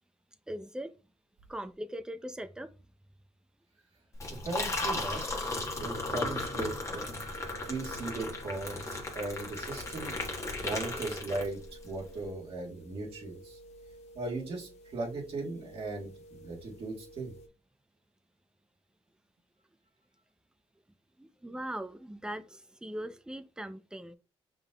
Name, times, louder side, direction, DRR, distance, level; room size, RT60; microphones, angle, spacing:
voice 1, 0.5-0.9 1.5-2.7 21.2-24.1, right 1 dB, 5° right, 0.5 m, -40 dB
Liquid, 4.1-11.8, left 2 dB, 25° left, 1.2 m, -35 dB
voice 2, 4.3-7.1 7.6-10.2 10.6-11.6 11.8-13.6 14.2-17.3, right 2 dB, 60° right, 1.7 m, -38 dB
sound 1, 5.7-17.5, right 1 dB, 75° left, 0.9 m, -52 dB
5.4 x 3.7 x 2.3 m
cardioid pair, 90°, 11 cm